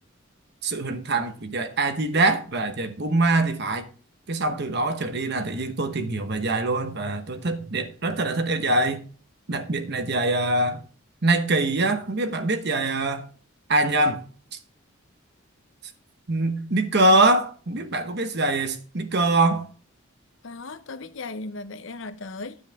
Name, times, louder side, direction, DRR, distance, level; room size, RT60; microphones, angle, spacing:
voice 1, 0.6-3.9 4.3-9.0 9.5-10.8 11.2-13.3 13.7-14.2 14.5-14.6 16.3-19.7, right 2 dB, 50° right, 1.0 m, -23 dB
voice 2, 20.4-22.6, left 3 dB, 60° left, 0.7 m, -36 dB
9.7 x 7.8 x 3.5 m
head